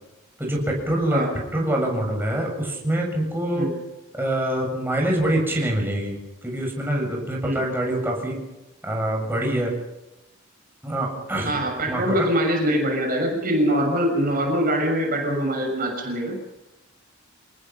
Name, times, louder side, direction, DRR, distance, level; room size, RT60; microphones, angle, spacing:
voice 1, 0.4-1.3 1.5-3.8 4.1-6.2 6.4-8.4 8.8-9.7 10.8-11.6 11.9-12.3, right 1 dB, 10° right, -1 dB, 7.2 m, -25 dB
voice 2, 11.4-16.4, equal, 45° right, 2 dB, 6.5 m, -23 dB
28.0 x 20.0 x 5.8 m, 0.93 s
head